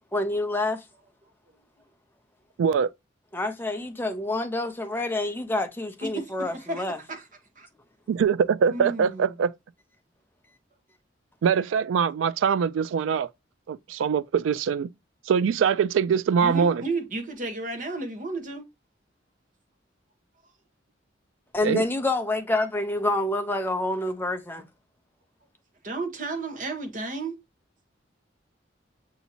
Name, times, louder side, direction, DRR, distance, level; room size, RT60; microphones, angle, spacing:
voice 1, 0.1-0.8 3.3-7.0 21.5-24.6, left 2 dB, 10° left, 0.6 m, -27 dB
voice 2, 2.6-2.9 8.1-9.5 11.4-13.3 13.7-14.9 15.3-16.8 21.6-21.8, right 6 dB, 90° right, 0.3 m, -23 dB
voice 3, 6.0-7.3 7.6-7.7 8.7-9.3 16.4-18.7 25.8-27.4, right 3 dB, 45° right, 1.1 m, -33 dB
6.9 x 2.8 x 2.8 m
head